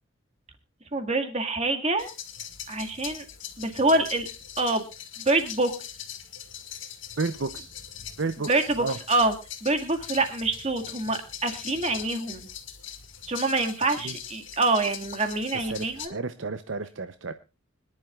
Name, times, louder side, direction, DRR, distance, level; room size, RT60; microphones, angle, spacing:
voice 1, 0.9-2.1 2.7-3.3 3.6-4.3 4.6-4.9 5.3-5.7 8.5-9.3 9.6-12.5 13.3-16.2, right 2 dB, 30° right, 5 dB, 1.9 m, -26 dB
sound 1, 2.0-16.1, left 9 dB, 65° left, 1.9 m, -41 dB
voice 2, 7.2-7.7 8.2-9.0 14.0-14.2 15.7-17.3, right 4 dB, 60° right, 10 dB, 0.7 m, -32 dB
25.0 x 11.0 x 2.4 m, 0.29 s
head